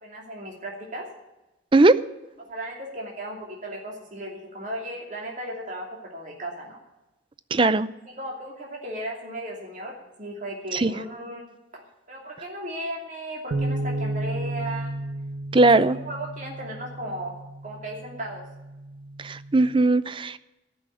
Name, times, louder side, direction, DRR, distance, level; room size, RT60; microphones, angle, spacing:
voice 1, 0.0-1.1 2.4-6.8 8.0-9.9 10.2-11.5 11.7-11.8 12.1-14.9 15.6-17.3 17.6-18.4, right 1 dB, 45° right, -2 dB, 2.8 m, -36 dB
voice 2, 7.5-7.9 10.7-10.9 15.5-16.0 19.2-20.4, right 2 dB, 25° right, 15 dB, 0.5 m, -18 dB
sound 1, 13.5-19.8, right 1 dB, 85° right, 1.2 m, -33 dB
14.0 x 6.3 x 9.9 m, 0.99 s
head